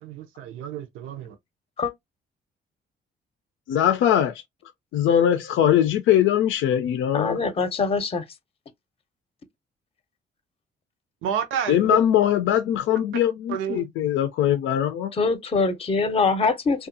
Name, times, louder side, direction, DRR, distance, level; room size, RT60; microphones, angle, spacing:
voice 1, 0.0-1.4 11.2-12.0 13.5-13.9, right 8 dB, 90° right, 0.6 m, -30 dB
voice 2, 3.7-4.3 4.9-7.4 11.7-15.1, left 10 dB, 85° left, 0.5 m, -21 dB
voice 3, 7.1-8.2 15.1-16.9, left 4 dB, 30° left, 0.6 m, -23 dB
2.6 x 2.3 x 2.6 m
cardioid pair, 90°, 20 cm